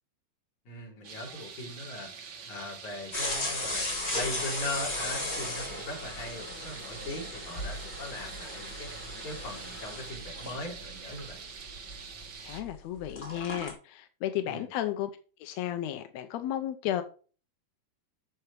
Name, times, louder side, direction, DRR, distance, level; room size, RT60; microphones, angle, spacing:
voice 1, 0.7-11.5 14.5-14.7, left 2 dB, 60° left, 4.6 m, -40 dB
sound 1, 1.0-12.6, right 6 dB, 50° right, 1.6 m, -45 dB
sound 2, 3.1-12.7 13.0-13.7, left 1 dB, 20° left, 2.7 m, -36 dB
voice 2, 12.4-15.1 15.4-17.0, left 12 dB, 75° left, 1.6 m, -33 dB
8.1 x 7.0 x 4.7 m
omnidirectional pair, 3.8 m